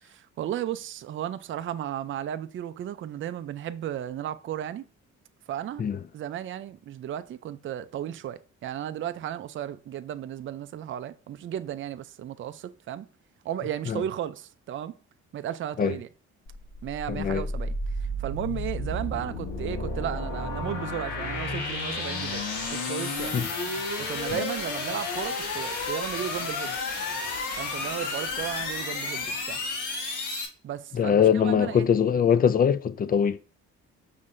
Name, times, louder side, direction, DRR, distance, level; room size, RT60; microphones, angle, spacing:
voice 1, 0.0-4.9 5.5-5.8 6.1-13.1 13.4-15.0 15.3-16.1 16.8-17.8 18.2-23.4 24.0-26.8 27.6-29.6 30.6-31.9, right 11 dB, 45° right, 0.4 m, -34 dB
sound 1, 16.5-30.5, left 2 dB, 80° left, 1.4 m, -32 dB
voice 2, 17.1-17.5 23.3-23.5 24.3-24.4 30.9-33.4, left 8 dB, 30° left, 0.4 m, -22 dB
5.4 x 3.2 x 2.5 m
cardioid pair, 90°, 30 cm